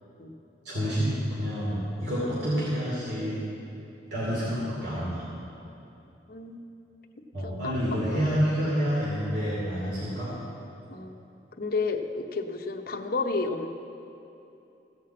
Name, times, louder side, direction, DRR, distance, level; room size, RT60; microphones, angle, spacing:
voice 1, 0.6-3.4 4.1-5.3 7.3-10.3, equal, 65° right, -8 dB, 2.7 m, -28 dB
voice 2, 6.3-6.6 7.4-8.3 10.9-11.2 11.6-13.7, left 3 dB, 55° left, 5 dB, 0.8 m, -31 dB
15.5 x 5.9 x 7.5 m, 2.8 s
head